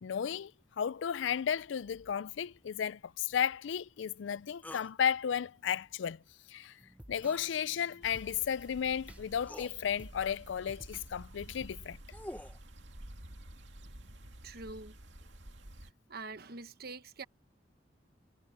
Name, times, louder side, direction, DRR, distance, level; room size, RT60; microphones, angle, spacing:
voice 1, 0.0-0.5 0.8-6.2 6.5-6.8 7.1-12.0, left 8 dB, 75° left, 0.4 m, -34 dB
sound 1, 4.6-4.9 7.2-7.5 8.8-8.9 9.4-9.7 11.7-12.6, left 1 dB, 10° left, 1.1 m, -46 dB
sound 2, 6.8-11.8, right 1 dB, 10° right, 0.5 m, -56 dB
sound 3, 8.0-15.9, right 1 dB, 70° right, 2.5 m, -51 dB
voice 2, 14.4-14.9 16.1-17.2, right 3 dB, 55° right, 1.2 m, -44 dB
head